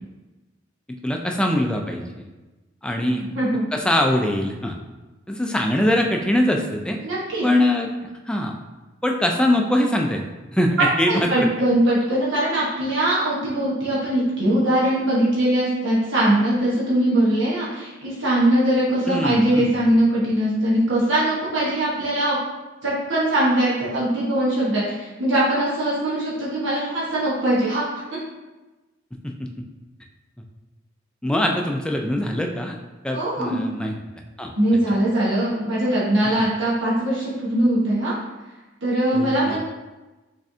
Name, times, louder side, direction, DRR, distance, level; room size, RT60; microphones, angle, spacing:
voice 1, 0.9-2.3 2.8-3.2 3.7-4.8 5.3-7.0 7.4-7.9 8.3-8.6 9.0-10.2 10.5-11.5 19.1-19.7 29.2-29.5 31.2-32.8 33.0-33.9 34.4-34.5 39.1-39.6, left 1 dB, 5° left, 2 dB, 0.3 m, -22 dB
voice 2, 3.0-3.6 7.0-7.5 11.1-22.4 22.8-27.8 28.1-28.2 33.1-33.6 34.6-38.1 38.8-39.6, right 1 dB, 75° right, -7 dB, 1.1 m, -21 dB
6.1 x 3.2 x 2.7 m, 1.1 s
head